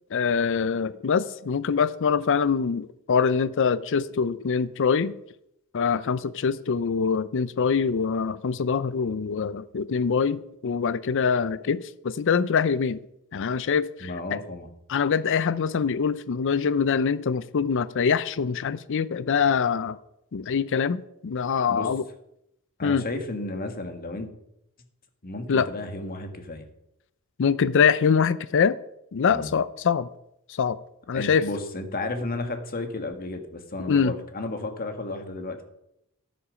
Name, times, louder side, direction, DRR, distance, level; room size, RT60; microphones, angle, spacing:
voice 1, 0.1-5.1 5.7-13.0 13.3-14.4 14.9-20.0 20.3-22.0 22.8-23.0 25.5-25.7 27.4-28.8 29.1-30.1 30.5-30.8 31.1-31.5 33.9-34.1, left 6 dB, 60° left, 0.5 m, -24 dB
voice 2, 14.0-14.7 21.7-21.9 22.8-24.3 25.2-26.6 29.3-29.5 31.1-35.6, left 2 dB, 45° left, 1.7 m, -33 dB
13.0 x 10.0 x 5.0 m
head